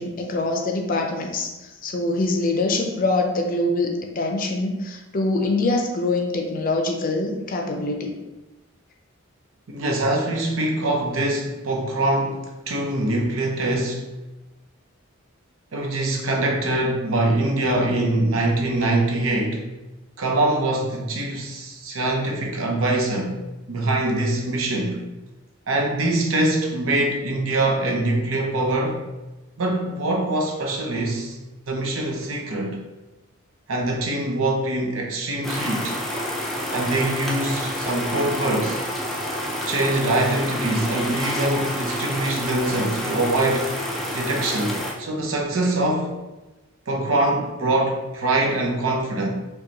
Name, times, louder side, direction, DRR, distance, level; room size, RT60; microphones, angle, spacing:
voice 1, 0.0-8.1, left 2 dB, 45° left, 3 dB, 0.5 m, -24 dB
voice 2, 9.7-14.1 15.7-19.7 20.2-23.4 23.7-25.0 25.7-29.0 29.6-31.4 31.7-32.8 33.7-36.0 36.7-38.8 39.7-43.7 44.1-46.1 46.9-49.3, right 2 dB, 85° right, 1 dB, 0.7 m, -23 dB
sound 1, 35.4-44.9, equal, ahead, 0.6 m, -28 dB
5.1 x 2.3 x 2.9 m, 1.1 s
head